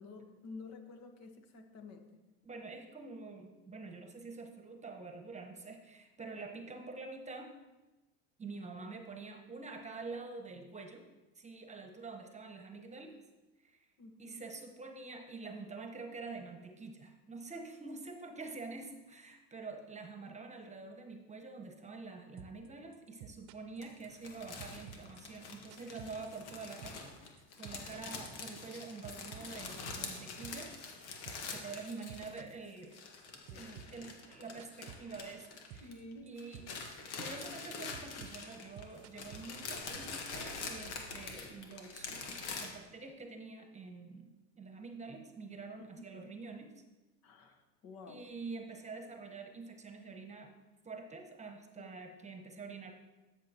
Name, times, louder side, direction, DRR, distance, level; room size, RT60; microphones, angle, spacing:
voice 1, 0.0-2.1 14.0-14.4 20.3-20.4 27.9-28.0 31.6-32.0 33.5-34.0 35.8-36.4 45.8-46.0 47.2-48.2 52.0-52.1, left 3 dB, 50° left, 5 dB, 1.4 m, -51 dB
voice 2, 2.4-7.5 8.4-11.0 11.3-13.2 13.6-13.9 14.2-30.8 31.5-33.0 33.5-35.9 36.2-36.7 37.2-46.8 48.1-50.5 50.8-52.9, right 3 dB, 20° right, 4 dB, 1.2 m, -47 dB
sound 1, 22.4-22.7 22.9-24.3 24.6-26.6 26.8-27.1 27.4-31.6 31.8-33.2 33.5-35.4 35.7-36.0 36.3-37.1 37.4-40.0, right 10 dB, 60° right, 0.8 m, -51 dB
sound 2, 23.8-32.5 32.8-36.1 36.4-42.7, left 4 dB, 85° left, 1.6 m, -45 dB
13.0 x 7.0 x 3.0 m, 1.1 s
supercardioid pair, 100°, 34 cm